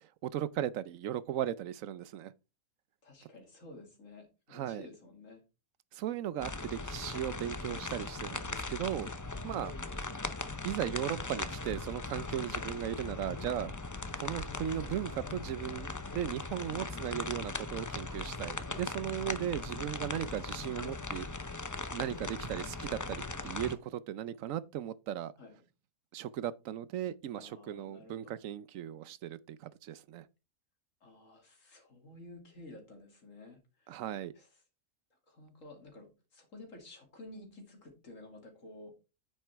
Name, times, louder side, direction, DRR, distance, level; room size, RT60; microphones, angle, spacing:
voice 1, 0.2-2.3 4.5-4.9 5.9-9.1 9.4-10.1 10.6-13.7 14.2-21.3 21.9-25.3 26.1-30.3 33.9-34.3, right 11 dB, 70° right, 1.0 m, -37 dB
voice 2, 3.0-5.4 9.3-9.5 16.7-17.5 25.4-25.6 27.3-28.3 31.0-34.0 34.3-34.5 35.3-38.9, left 2 dB, 60° left, 2.9 m, -52 dB
sound 1, 6.4-23.7, left 3 dB, 30° left, 0.3 m, -39 dB
9.2 x 7.6 x 3.5 m
omnidirectional pair, 1.5 m